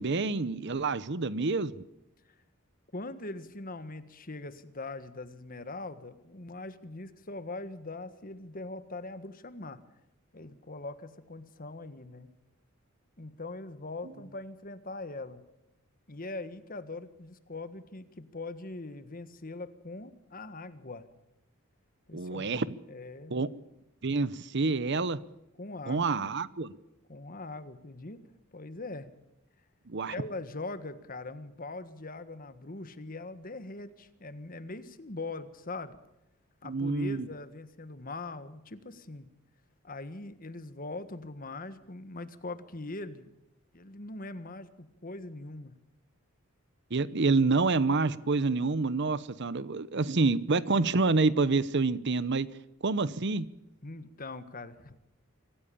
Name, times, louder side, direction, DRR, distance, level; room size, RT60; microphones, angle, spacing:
voice 1, 0.0-1.8 22.1-22.7 23.3-23.5 24.0-25.2 25.9-26.7 29.9-30.1 36.6-37.3 46.9-52.5 52.8-53.5, right 3 dB, 55° right, 17 dB, 0.8 m, -27 dB
voice 2, 2.9-9.8 10.3-12.3 13.2-15.4 16.1-21.1 22.1-22.6 22.9-23.4 25.6-26.2 27.1-28.2 28.5-29.1 30.1-36.0 36.6-39.3 39.8-43.3 43.7-45.8 53.8-55.0, left 2 dB, 40° left, 12 dB, 1.6 m, -41 dB
24.5 x 15.5 x 7.1 m, 0.91 s
head